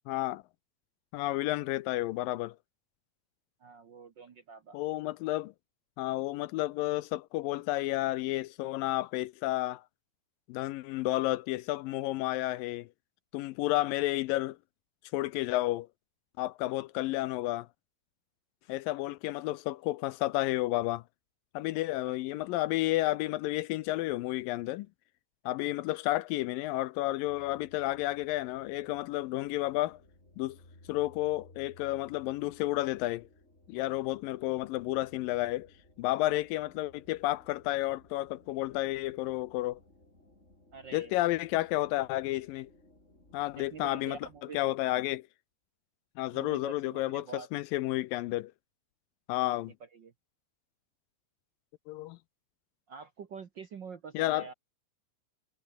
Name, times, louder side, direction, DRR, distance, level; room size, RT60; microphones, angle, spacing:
voice 1, 0.1-0.4 1.1-2.6 4.7-5.5 6.0-9.8 10.5-12.9 13.3-14.6 15.1-15.9 16.4-17.7 18.7-21.0 21.5-24.9 25.5-30.0 30.4-30.6 30.9-33.3 33.7-35.7 36.0-39.8 40.9-42.7 43.3-44.2 44.5-45.3 46.2-48.5 49.3-49.7 51.9-52.2 54.1-54.5, left 17 dB, 80° left, 2.2 m, -31 dB
voice 2, 3.6-4.8 22.0-22.1 40.7-41.3 43.6-44.7 46.3-47.5 49.5-49.6 49.9-50.1 52.9-54.5, right 6 dB, 85° right, 1.0 m, -46 dB
sound 1, 27.3-44.4, left 1 dB, 15° left, 7.3 m, -60 dB
omnidirectional pair, 4.4 m